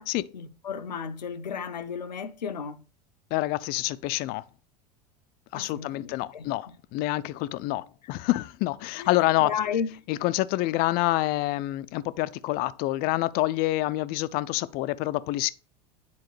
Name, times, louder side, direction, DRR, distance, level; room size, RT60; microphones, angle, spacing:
voice 1, 0.3-2.8 5.5-6.5 9.0-9.1 9.4-10.0, left 7 dB, 85° left, 0.7 m, -33 dB
voice 2, 3.3-4.4 5.5-9.5 10.1-15.5, left 17 dB, 45° left, 0.5 m, -27 dB
9.5 x 4.2 x 3.2 m
hypercardioid pair, 85°, 21 cm